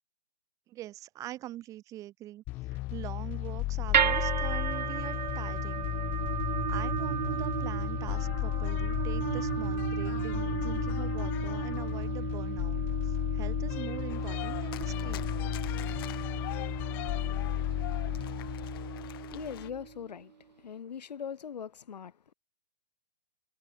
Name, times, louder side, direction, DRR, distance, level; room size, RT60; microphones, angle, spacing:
voice 1, 0.7-2.4 2.7-5.9 6.7-15.3, right 14 dB, 15° right, 6.7 m, -44 dB
sound 1, 2.5-19.8, left 19 dB, 10° left, 0.5 m, -34 dB
sound 2, 3.9-20.1, right 8 dB, 85° right, 1.2 m, -34 dB
sound 3, 14.1-19.7, left 15 dB, 35° left, 7.2 m, -45 dB
voice 2, 19.3-22.3, left 7 dB, 75° left, 6.7 m, -41 dB
hypercardioid pair, 175°, 21 cm